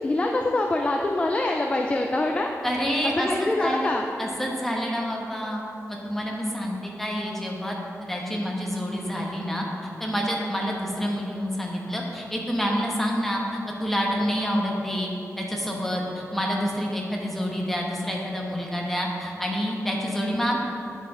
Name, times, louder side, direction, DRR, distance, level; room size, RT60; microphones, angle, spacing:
voice 1, 0.0-2.5 3.0-4.1, left 2 dB, 20° left, 2 dB, 0.4 m, -24 dB
voice 2, 2.6-3.9 4.2-5.6 5.9-9.6 10.0-13.4 13.8-20.6, equal, 5° left, -2 dB, 1.1 m, -28 dB
11.0 x 5.0 x 3.7 m, 2.8 s
wide cardioid pair, 145°, 6 cm